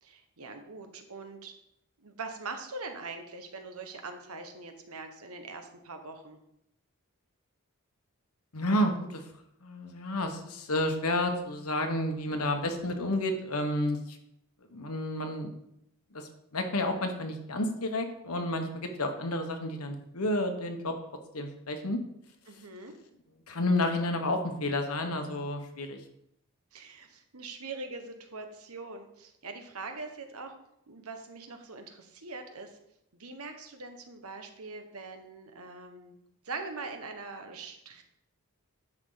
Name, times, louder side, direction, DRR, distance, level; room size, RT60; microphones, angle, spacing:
voice 1, 0.0-1.5 2.0-6.4 22.5-22.9 26.7-30.6 30.9-32.8 33.1-36.2 36.4-38.0, right 3 dB, 80° right, 5 dB, 1.3 m, -42 dB
voice 2, 8.5-9.2 9.6-14.2 14.7-15.5 16.1-20.9 21.3-22.0 23.5-26.0, left 1 dB, 85° left, 5 dB, 1.3 m, -30 dB
10.5 x 6.4 x 4.0 m, 0.78 s
head